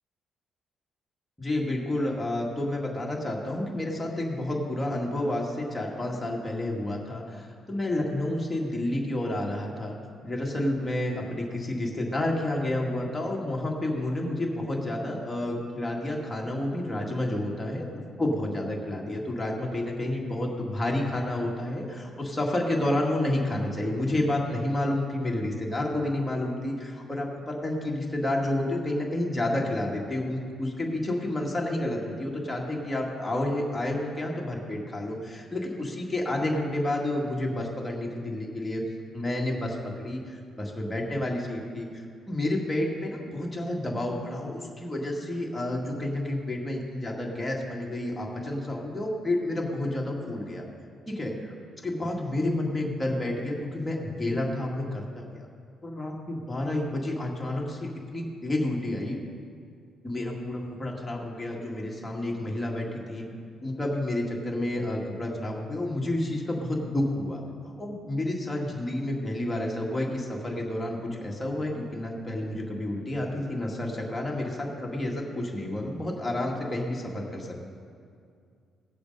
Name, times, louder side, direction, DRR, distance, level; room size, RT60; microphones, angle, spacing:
voice 1, 1.4-10.0 10.2-17.9 18.2-38.8 39.1-50.7 51.1-51.3 51.8-55.5 55.8-59.2 60.0-63.2 63.6-67.4 67.8-77.6, left 1 dB, 10° left, -2 dB, 1.9 m, -30 dB
17.5 x 6.8 x 5.3 m, 2.3 s
cardioid pair, 125°, 0 cm